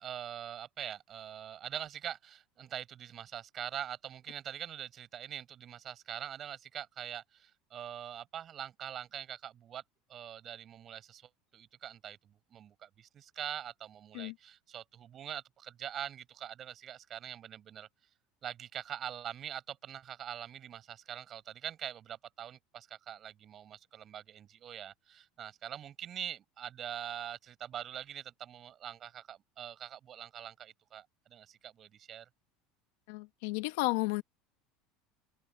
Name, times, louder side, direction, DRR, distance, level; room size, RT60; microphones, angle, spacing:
voice 1, 0.0-9.8 10.1-17.9 18.4-32.3, right 10 dB, 30° right, 7.6 m, -44 dB
voice 2, 33.1-34.2, left 23 dB, 75° left, 1.4 m, -32 dB
supercardioid pair, 145°, 0 cm